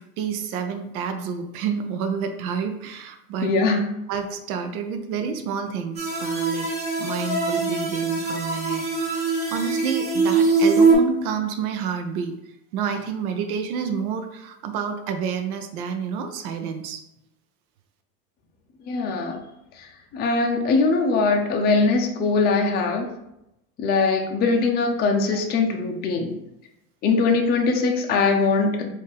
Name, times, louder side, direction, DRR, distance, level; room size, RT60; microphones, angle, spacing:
voice 1, 0.0-3.5 4.1-6.7 7.0-8.9 9.5-12.3 12.7-17.0 25.3-25.4, right 6 dB, 85° right, 7 dB, 0.6 m, -29 dB
voice 2, 3.4-3.9 18.8-19.4 19.8-23.1 23.8-26.4 27.0-28.9, left 4 dB, 25° left, 2 dB, 0.5 m, -21 dB
sound 1, 6.0-11.0, right 4 dB, 15° right, 0.9 m, -22 dB
4.1 x 2.6 x 3.4 m, 0.85 s
supercardioid pair, 125°, 42 cm